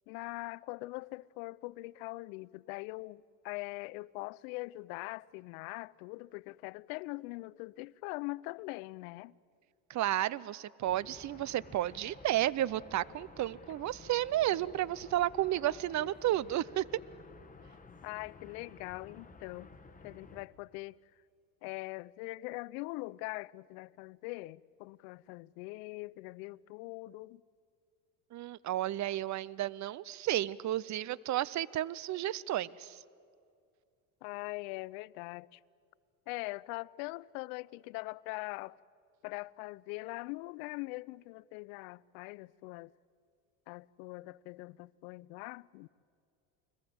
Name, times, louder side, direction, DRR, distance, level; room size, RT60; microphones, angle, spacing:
voice 1, 0.1-9.3 18.0-19.7 20.0-21.0 21.6-27.4 34.2-35.6 36.3-38.8 39.2-42.9 43.7-45.9, left 22 dB, 70° left, 0.6 m, -42 dB
voice 2, 9.9-17.0 28.3-33.0, right 13 dB, 40° right, 0.7 m, -32 dB
sound 1, 10.8-20.5, left 4 dB, 20° left, 2.1 m, -54 dB
29.0 x 21.0 x 8.0 m
hypercardioid pair, 80°, 43 cm